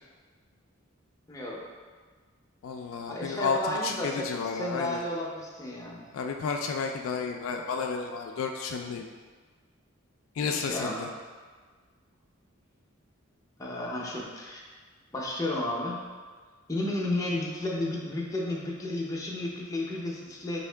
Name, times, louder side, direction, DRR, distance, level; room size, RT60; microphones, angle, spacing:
voice 1, 1.3-1.6 3.1-6.0 10.5-11.1 13.6-14.6 15.1-16.0 16.7-20.6, left 1 dB, 15° left, -3 dB, 0.6 m, -32 dB
voice 2, 2.6-5.0 6.1-9.1 10.4-11.1, left 5 dB, 70° left, 3 dB, 0.3 m, -32 dB
4.6 x 2.8 x 3.3 m, 1.5 s
head